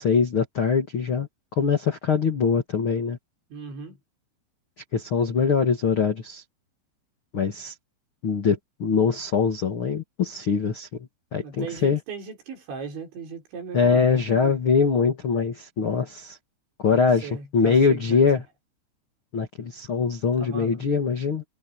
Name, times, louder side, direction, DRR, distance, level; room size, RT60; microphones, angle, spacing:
voice 1, 0.0-3.2 4.9-6.4 7.3-7.7 8.2-12.0 13.7-16.4 16.8-18.4 19.3-21.4, left 5 dB, 70° left, 1.2 m, -23 dB
voice 2, 3.5-4.0 11.4-14.6 16.9-18.3 20.3-20.9, right 5 dB, 65° right, 7.6 m, -38 dB
omnidirectional pair, 5.7 m